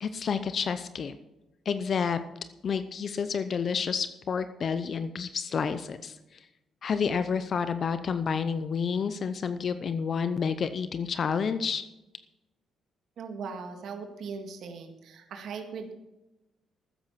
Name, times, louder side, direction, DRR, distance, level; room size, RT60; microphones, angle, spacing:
voice 1, 0.0-1.2 1.7-2.2 2.6-6.4 6.8-11.8, left 6 dB, 50° left, 11 dB, 0.7 m, -29 dB
voice 2, 13.2-15.9, right 5 dB, 70° right, 4 dB, 1.9 m, -39 dB
13.5 x 9.9 x 5.8 m, 0.99 s
cardioid pair, 90°, 0 cm